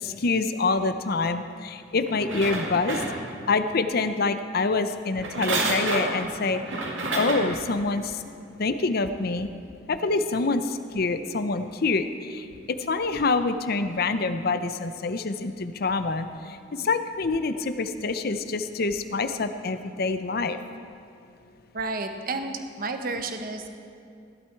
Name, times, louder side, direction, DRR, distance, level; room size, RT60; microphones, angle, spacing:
voice 1, 0.0-3.0 3.5-6.6 7.1-8.2 8.6-9.5 9.9-20.6, left 3 dB, 55° left, 10 dB, 0.7 m, -26 dB
sound 1, 2.1-3.6 5.1-7.6 8.1-8.2, right 2 dB, 90° right, 2.1 m, -29 dB
voice 2, 21.7-23.7, right 3 dB, 50° right, 6 dB, 1.0 m, -31 dB
15.5 x 11.5 x 4.7 m, 2.5 s
head